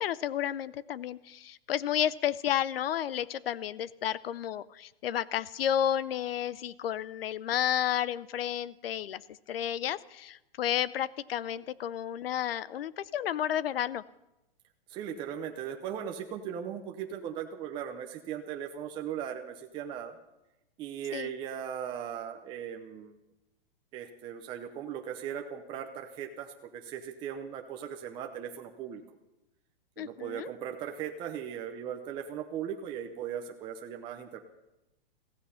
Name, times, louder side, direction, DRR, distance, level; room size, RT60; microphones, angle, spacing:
voice 1, 0.0-9.2 9.5-14.0 21.1-21.3 30.0-30.5, left 10 dB, 75° left, 19 dB, 0.7 m, -31 dB
voice 2, 14.9-20.2 20.8-23.1 23.9-29.0 30.0-34.4, right 9 dB, 15° right, 4 dB, 0.7 m, -38 dB
15.5 x 15.0 x 5.7 m, 0.94 s
hypercardioid pair, 160°, 30 cm